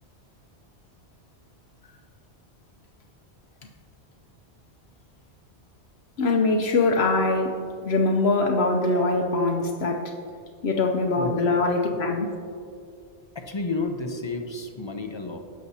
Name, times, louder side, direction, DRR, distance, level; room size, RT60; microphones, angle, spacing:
voice 1, 6.2-10.1 10.6-12.3, left 3 dB, 70° left, 2 dB, 1.0 m, -23 dB
voice 2, 13.3-15.4, left 3 dB, 30° left, 5 dB, 0.6 m, -31 dB
16.5 x 6.4 x 2.8 m, 2.3 s
omnidirectional pair, 1.1 m